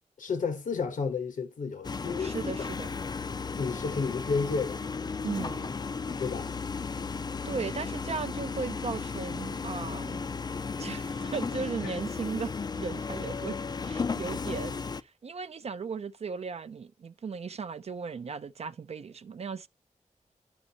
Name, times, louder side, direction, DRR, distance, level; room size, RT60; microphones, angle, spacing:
voice 1, 0.2-2.5 3.6-4.8 6.2-6.5 11.8-12.0, left 5 dB, 80° left, 1.0 m, -31 dB
sound 1, 1.8-15.0, left 5 dB, 30° left, 0.4 m, -35 dB
voice 2, 2.2-2.9 5.2-5.7 7.4-10.3 10.8-12.5 12.8-13.6 13.8-19.7, right 5 dB, 50° right, 0.4 m, -37 dB
11.0 x 5.1 x 2.8 m
wide cardioid pair, 110°, 13 cm